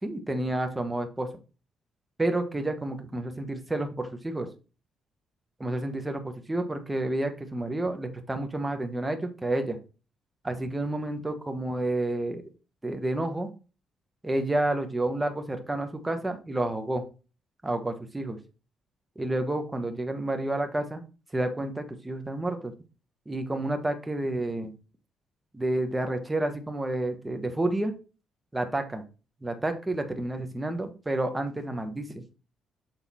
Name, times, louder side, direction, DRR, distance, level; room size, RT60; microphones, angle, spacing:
voice 1, 0.0-1.3 2.2-4.5 5.6-9.8 10.4-12.4 12.8-13.5 14.2-17.0 17.6-18.4 19.2-21.0 21.3-22.7 23.3-24.7 25.5-27.9 28.5-29.0 29.4-32.1, right 1 dB, 15° right, 6 dB, 1.3 m, -30 dB
7.3 x 3.9 x 4.3 m, 0.33 s
cardioid pair, 90°, 0 cm